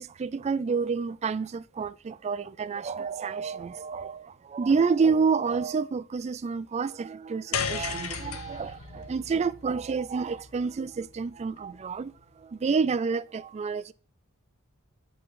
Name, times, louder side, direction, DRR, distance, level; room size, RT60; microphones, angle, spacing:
voice 1, 0.0-12.1 12.4-13.9, right 5 dB, 30° right, 0.3 m, -29 dB
sound 1, 7.5-11.9, left 6 dB, 90° left, 0.9 m, -36 dB
8.0 x 4.4 x 5.6 m
head